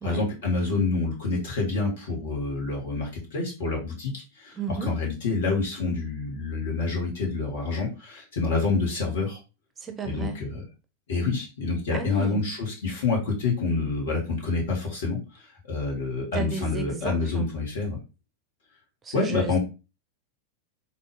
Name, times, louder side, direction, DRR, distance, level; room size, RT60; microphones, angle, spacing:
voice 1, 0.0-9.4 10.0-10.6 11.1-18.0 19.1-19.6, left 3 dB, 60° left, 1.7 m, -27 dB
voice 2, 4.5-4.9 9.8-10.4 11.9-12.4 16.3-17.5 19.0-19.6, right 5 dB, 20° right, 0.6 m, -33 dB
4.1 x 2.7 x 3.4 m
figure-of-eight pair, 90°, 0 cm